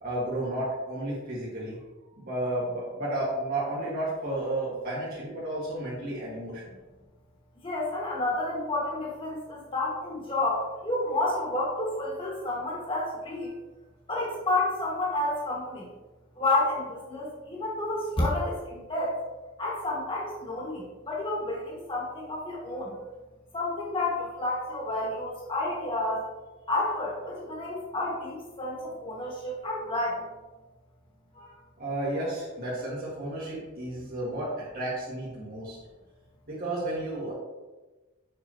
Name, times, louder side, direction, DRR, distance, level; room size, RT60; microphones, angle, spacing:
voice 1, 0.0-1.8 2.2-6.7 31.8-35.8 36.5-37.3, right 1 dB, 45° right, -8 dB, 1.8 m, -32 dB
voice 2, 7.5-13.5 14.1-15.9 16.4-19.2 19.6-23.0 23.5-26.3 26.7-30.2 31.3-31.6, left 2 dB, 25° left, -4 dB, 2.0 m, -30 dB
6.8 x 5.8 x 3.1 m, 1.1 s
head